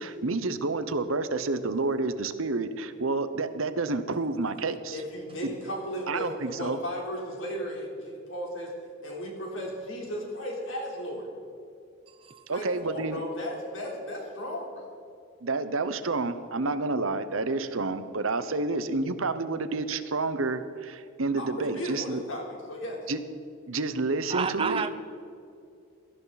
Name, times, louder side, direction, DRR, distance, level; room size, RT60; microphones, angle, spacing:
voice 1, 0.0-5.0 5.4-5.6 6.1-6.8 12.5-13.2 15.4-22.2 23.1-23.2 23.7-24.8, right 3 dB, 75° right, 11 dB, 0.9 m, -29 dB
voice 2, 4.9-8.7 9.0-11.3 12.5-14.9 21.4-23.0, equal, 65° left, -1 dB, 3.8 m, -35 dB
voice 3, 24.3-24.9, right 6 dB, 25° right, 8 dB, 0.5 m, -29 dB
17.5 x 13.5 x 4.2 m, 2.5 s
head